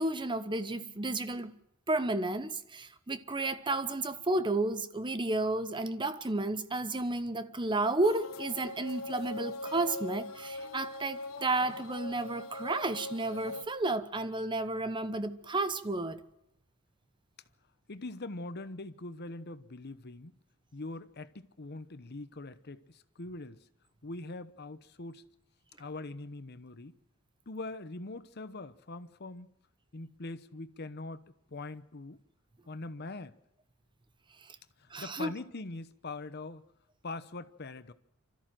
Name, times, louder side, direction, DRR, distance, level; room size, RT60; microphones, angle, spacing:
voice 1, 0.0-1.5 1.9-16.2 34.9-35.3, right 2 dB, 20° right, 1.0 m, -32 dB
Asakusa religious cerimony, 8.0-13.6, left 2 dB, 70° left, 1.4 m, -41 dB
voice 2, 17.9-20.3 20.7-23.6 24.0-25.2 25.8-27.0 27.5-29.5 29.9-31.2 31.5-32.2 32.7-33.4 34.8-36.6 37.0-37.9, left 2 dB, 50° left, 1.0 m, -42 dB
27.0 x 13.5 x 7.6 m
head